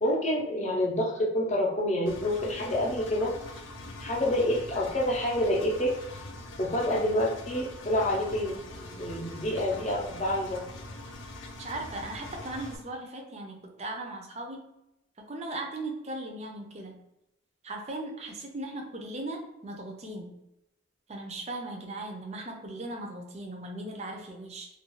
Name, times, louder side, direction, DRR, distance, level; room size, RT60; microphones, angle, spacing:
voice 1, 0.0-3.3 4.0-5.9 6.6-10.6, left 1 dB, 35° left, -2 dB, 0.6 m, -28 dB
Engine, 2.1-12.8, left 2 dB, 80° left, 0.4 m, -43 dB
voice 2, 11.6-14.6 15.3-17.0 17.6-20.3 21.1-24.7, right 2 dB, 35° right, 2 dB, 0.5 m, -38 dB
2.4 x 2.2 x 3.0 m, 0.88 s
head